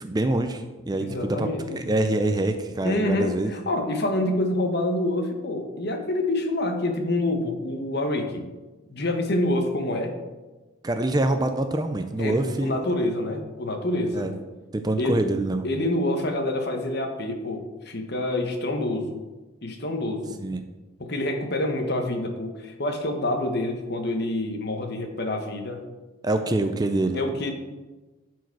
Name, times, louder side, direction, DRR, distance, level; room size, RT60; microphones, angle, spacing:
voice 1, 0.0-3.5 10.8-12.8 14.1-14.4 14.7-15.6 20.4-20.6 26.2-27.2, right 2 dB, 20° right, 7 dB, 0.5 m, -25 dB
voice 2, 1.0-1.8 2.8-8.4 8.9-10.1 12.2-14.3 15.0-15.3 15.6-19.2 19.6-20.4 21.0-25.8 27.1-27.5, left 1 dB, 50° left, 4 dB, 1.2 m, -27 dB
11.5 x 4.7 x 4.7 m, 1.2 s
head